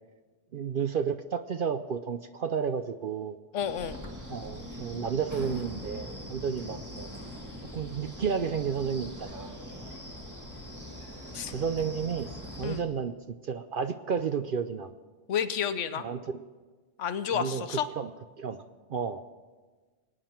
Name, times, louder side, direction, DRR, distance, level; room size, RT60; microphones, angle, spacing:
voice 1, 0.5-3.4 4.3-7.1 7.7-9.5 11.5-12.3 12.6-14.9 16.0-16.2 17.3-18.1 18.4-18.6 18.9-19.2, right 6 dB, 55° right, 9 dB, 0.6 m, -32 dB
voice 2, 3.5-4.0 11.3-11.5 12.6-12.9 15.3-16.1 17.0-17.9, left 8 dB, 75° left, 12 dB, 1.1 m, -30 dB
Wind, 3.6-12.8, equal, 15° right, 1.9 m, -42 dB
23.0 x 9.2 x 4.4 m, 1.3 s
omnidirectional pair, 1.3 m